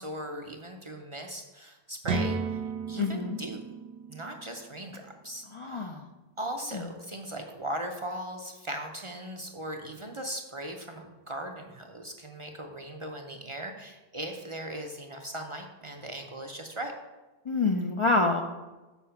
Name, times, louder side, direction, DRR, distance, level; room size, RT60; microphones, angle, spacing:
voice 1, 0.0-2.4 2.9-3.7 4.1-6.0 6.4-16.9, right 1 dB, 40° right, 4 dB, 0.5 m, -38 dB
sound 1, 2.0-5.8, right 4 dB, 85° right, 1.0 m, -35 dB
voice 2, 3.0-3.4 5.5-6.0 6.7-6.9 17.5-18.4, left 3 dB, 45° left, 3 dB, 0.4 m, -27 dB
7.1 x 4.7 x 5.7 m, 1.2 s
omnidirectional pair, 1.1 m